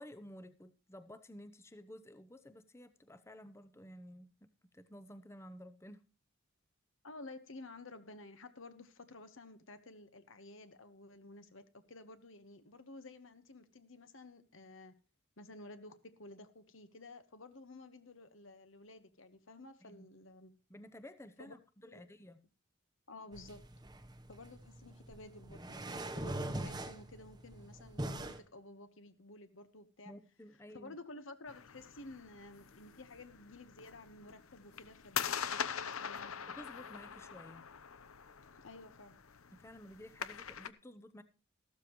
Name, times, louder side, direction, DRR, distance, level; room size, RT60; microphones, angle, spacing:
voice 1, 0.0-4.5 4.7-6.0 19.8-20.1 20.7-22.4 30.1-31.0 36.5-37.7 39.6-41.2, left 1 dB, 10° left, 11 dB, 0.7 m, -53 dB
voice 2, 7.0-14.9 15.4-20.5 21.4-21.5 21.8-22.0 23.1-23.6 24.3-30.1 30.7-36.5 38.6-39.2, left 2 dB, 70° left, 10 dB, 1.3 m, -53 dB
sound 1, 23.3-28.4, right 1 dB, 20° right, 1.0 m, -42 dB
sound 2, 31.5-40.7, left 8 dB, 85° left, 0.8 m, -43 dB
14.5 x 13.0 x 3.1 m, 0.33 s
head